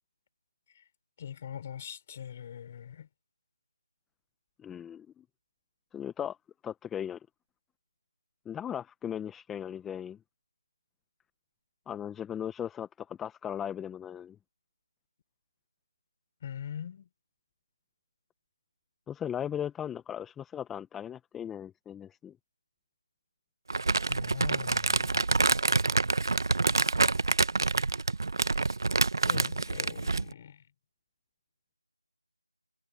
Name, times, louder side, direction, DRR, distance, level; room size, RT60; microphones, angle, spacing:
voice 1, 1.2-3.1 16.4-17.1 24.1-25.4 29.2-30.7, left 8 dB, 20° left, 4.8 m, -42 dB
voice 2, 4.6-5.2 5.9-6.4 6.6-7.2 8.5-10.2 11.9-14.4 19.1-22.4, left 9 dB, 5° left, 0.8 m, -37 dB
Crumpling crinkling, 23.7-30.3, right 3 dB, 55° right, 1.1 m, -27 dB
figure-of-eight pair, 170°, 3 cm